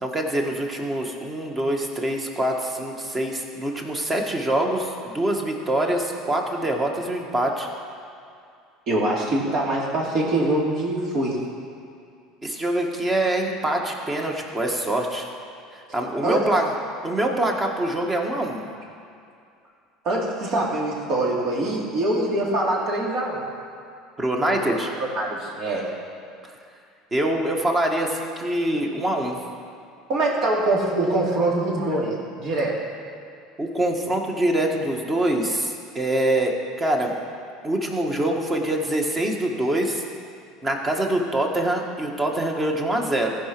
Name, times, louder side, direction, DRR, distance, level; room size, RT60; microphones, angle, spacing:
voice 1, 0.0-7.7 12.4-15.3 15.7-16.7 17.0-18.7 24.2-24.9 26.4-26.5 27.1-29.4 33.6-37.1 37.6-40.0 40.6-43.4, right 1 dB, 25° right, 2 dB, 1.6 m, -24 dB
voice 2, 8.9-11.4 16.2-16.4 20.0-23.5 24.4-25.9 30.1-32.8, right 2 dB, 55° right, -3 dB, 2.7 m, -24 dB
15.0 x 5.0 x 6.1 m, 2.4 s
supercardioid pair, 95°, 0 cm